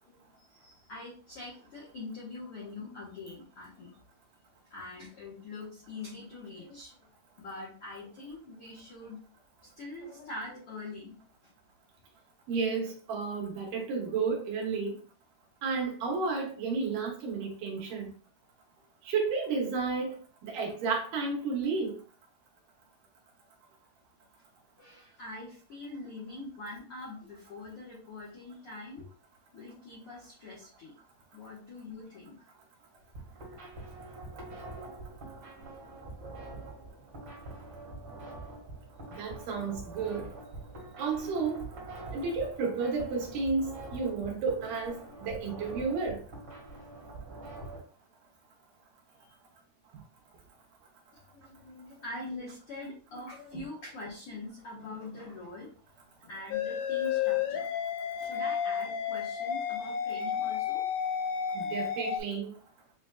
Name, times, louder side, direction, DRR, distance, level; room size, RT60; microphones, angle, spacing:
voice 1, 0.1-3.9 4.7-9.2 9.6-11.2 24.8-29.1 29.5-30.9 31.3-32.5 51.3-55.7 56.2-57.7 58.1-60.8, left 2 dB, 70° left, 1.3 m, -44 dB
voice 2, 12.5-14.9 15.6-18.1 19.1-20.2 20.4-22.0 39.2-40.2 41.0-41.6 42.1-46.2 61.5-62.5, right 4 dB, 70° right, 2.3 m, -32 dB
sound 1, 33.0-47.8, right 2 dB, 45° right, 1.8 m, -45 dB
sound 2, 56.5-62.2, left 8 dB, 90° left, 1.7 m, -31 dB
7.1 x 2.5 x 2.3 m
omnidirectional pair, 4.3 m